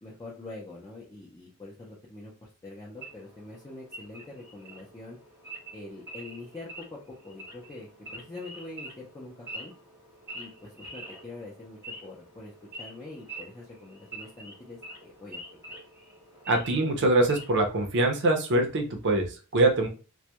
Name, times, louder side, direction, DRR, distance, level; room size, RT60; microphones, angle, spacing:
voice 1, 0.0-5.2 5.7-9.7 10.3-12.5 12.8-15.4, left 2 dB, 15° left, -5 dB, 0.5 m, -44 dB
Wild animals / Idling, 3.0-17.7, right 1 dB, 10° right, 0.8 m, -46 dB
voice 2, 16.5-19.9, right 2 dB, 55° right, 4 dB, 0.5 m, -24 dB
2.2 x 2.1 x 2.8 m, 0.34 s
head